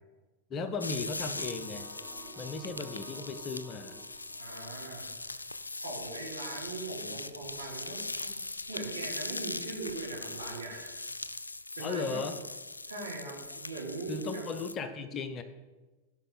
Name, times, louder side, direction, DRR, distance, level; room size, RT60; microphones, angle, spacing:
voice 1, 0.5-1.9 2.4-4.1 11.8-12.4 14.1-15.4, left 4 dB, 30° left, 10 dB, 0.8 m, -36 dB
sound 1, 0.8-14.7, left 2 dB, 80° left, 0.4 m, -40 dB
sound 2, 1.3-5.2, right 1 dB, ahead, 1.8 m, -52 dB
voice 2, 4.4-5.1 5.8-8.3 8.7-10.9 11.8-12.2 12.8-14.5, right 2 dB, 75° right, -5 dB, 3.6 m, -40 dB
16.0 x 5.6 x 3.9 m, 1.2 s
figure-of-eight pair, 90°, 0 cm